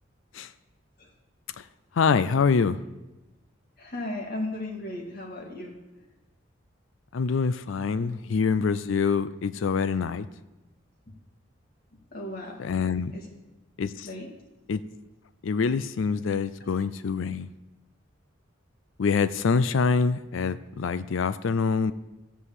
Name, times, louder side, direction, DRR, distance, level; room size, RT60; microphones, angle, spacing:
voice 1, 2.0-2.8 7.1-10.3 12.6-13.1 13.8-14.1 14.7-14.8 15.4-17.5 19.0-21.9, left 5 dB, 75° left, 0.4 m, -25 dB
voice 2, 3.8-5.8 12.1-12.6 13.1-13.3 14.0-14.3, left 1 dB, 50° left, 2.1 m, -35 dB
13.5 x 5.6 x 8.2 m
head